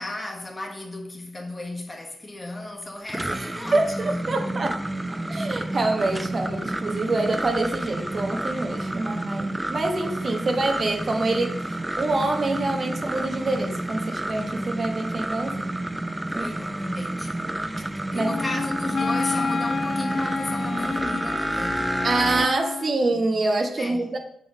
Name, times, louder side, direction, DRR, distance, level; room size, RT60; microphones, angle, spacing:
voice 1, 0.0-4.5 16.3-17.6 18.1-21.9 22.7-23.3 23.8-24.1, left 2 dB, 30° left, 1.2 m, -35 dB
sound 1, 2.8-22.5, right 1 dB, 15° right, 0.4 m, -30 dB
voice 2, 3.7-4.8 5.3-15.7 16.3-16.5 18.1-18.3 22.0-24.2, right 2 dB, 50° right, 1.0 m, -26 dB
Wind instrument woodwind instrument, 18.2-23.0, left 4 dB, 50° left, 0.4 m, -29 dB
5.1 x 3.6 x 5.2 m
supercardioid pair, 50°, 0 cm